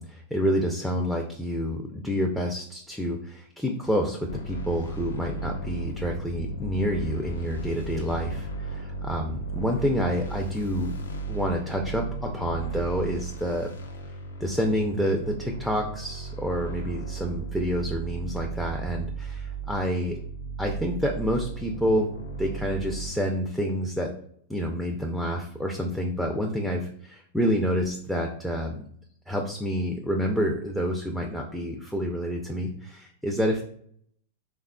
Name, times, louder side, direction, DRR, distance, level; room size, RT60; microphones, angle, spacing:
voice 1, 0.0-10.9 11.3-13.7 14.4-20.2 20.6-22.1 22.4-24.1 24.5-28.7 29.3-33.6, equal, ahead, 1 dB, 0.4 m, -28 dB
sound 1, 4.3-23.1, right 4 dB, 90° left, 0.5 m, -35 dB
3.3 x 2.3 x 2.2 m, 0.64 s
hypercardioid pair, 105°, 0 cm